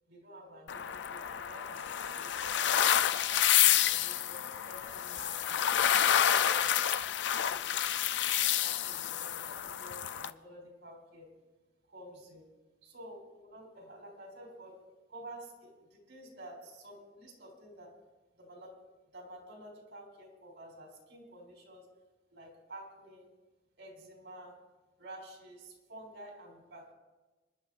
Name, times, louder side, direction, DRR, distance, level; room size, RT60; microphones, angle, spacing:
voice 1, 0.1-2.6 3.0-5.4 5.9-6.7 7.4-7.7 8.6-11.3 11.9-12.4 12.8-14.8 15.1-17.9 18.4-18.7 19.1-21.9 22.3-23.3 23.8-24.6 25.0-26.9, right 1 dB, 90° right, 0 dB, 4.2 m, -50 dB
sound 1, 0.7-10.3, left 10 dB, 80° left, 0.4 m, -29 dB
25.5 x 11.0 x 2.5 m, 1.2 s
head